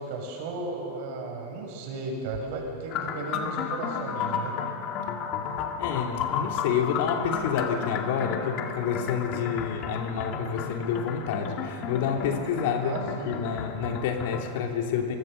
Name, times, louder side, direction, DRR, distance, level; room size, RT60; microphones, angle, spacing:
voice 1, 0.0-4.5 12.8-13.3, right 3 dB, 55° right, 1 dB, 6.5 m, -35 dB
sound 1, 2.9-14.6, left 7 dB, 40° left, 2.2 m, -33 dB
voice 2, 5.8-13.0 13.2-15.2, left 7 dB, 60° left, 3 dB, 2.9 m, -28 dB
23.5 x 22.5 x 6.7 m, 2.7 s
hypercardioid pair, 105°, 0 cm